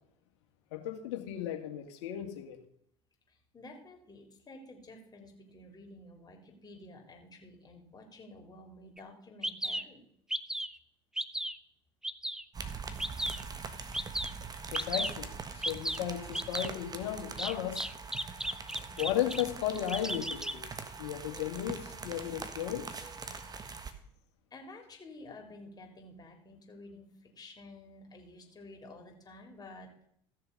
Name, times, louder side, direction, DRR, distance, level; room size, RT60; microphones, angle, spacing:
voice 1, 0.7-2.6 14.7-17.9 19.0-20.6 21.0-22.9, left 11 dB, 70° left, 4 dB, 2.0 m, -35 dB
voice 2, 3.3-10.0 24.5-29.9, left 2 dB, 25° left, 2 dB, 3.6 m, -51 dB
Bird vocalization bird call bird song, 9.0-9.1 9.4-9.8 10.3-10.8 11.2-11.6 12.0-12.4 13.0-13.4 13.9-14.3 14.7-15.1 15.6-16.0 16.3-16.7 17.4-19.4 19.8-20.5, right 1 dB, 5° right, 0.6 m, -34 dB
sound 1, 12.5-23.9, right 5 dB, 25° right, 1.5 m, -43 dB
15.0 x 6.8 x 5.4 m, 0.69 s
hypercardioid pair, 75°, 15 cm